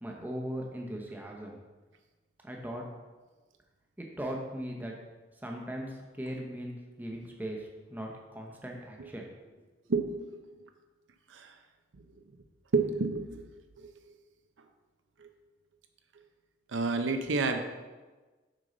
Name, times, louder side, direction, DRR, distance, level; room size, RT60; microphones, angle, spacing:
voice 1, 0.0-1.6 2.4-2.9 4.0-4.9 5.4-9.3, equal, 10° right, 0 dB, 0.7 m, -39 dB
voice 2, 9.9-10.3 11.3-11.5 12.7-13.5 13.8-13.9 15.2-15.3 16.7-17.6, right 3 dB, 85° right, 6 dB, 0.6 m, -29 dB
6.3 x 5.4 x 3.9 m, 1.3 s
head